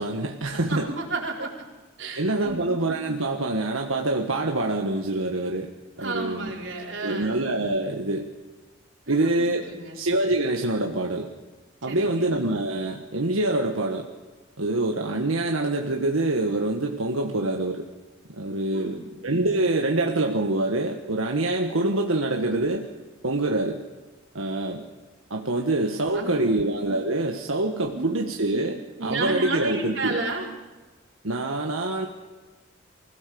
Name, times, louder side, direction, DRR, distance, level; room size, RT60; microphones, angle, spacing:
voice 1, 0.0-0.9 2.1-5.7 6.0-6.5 7.0-8.3 9.1-9.7 9.9-11.3 11.8-14.1 14.6-17.9 18.3-22.9 23.2-23.8 24.4-24.8 25.3-30.2 31.2-32.1, right 2 dB, 90° right, 1 dB, 1.7 m, -25 dB
voice 2, 0.5-1.5 2.0-2.7 6.0-7.3 9.1-10.0 11.9-12.3 18.7-19.1 26.1-26.5 27.7-28.2 28.5-28.6 29.0-30.5, right 3 dB, 60° right, 0 dB, 4.5 m, -32 dB
24.0 x 17.0 x 7.0 m, 1.2 s
head